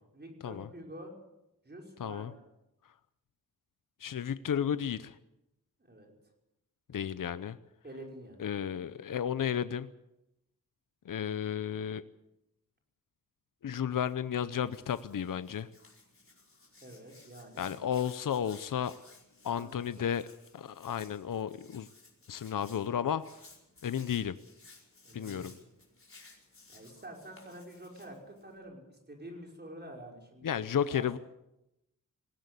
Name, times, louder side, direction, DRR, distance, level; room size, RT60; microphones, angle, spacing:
voice 1, 0.1-1.1 1.6-2.4 5.8-6.1 7.8-9.1 16.8-17.7 19.5-20.2 25.0-25.7 26.7-30.6 30.9-31.2, right 1 dB, 30° right, 1 dB, 5.5 m, -48 dB
voice 2, 2.0-2.3 4.0-5.2 6.9-7.6 8.4-9.9 11.1-12.0 13.6-15.7 17.6-18.9 19.4-20.3 20.5-21.9 22.3-23.2 23.8-24.4 25.1-25.5 30.4-31.2, left 8 dB, 70° left, 14 dB, 0.7 m, -33 dB
Hands, 13.9-28.6, left 3 dB, 40° left, 5.0 m, -58 dB
20.0 x 16.5 x 8.3 m, 0.90 s
wide cardioid pair, 95°, 33 cm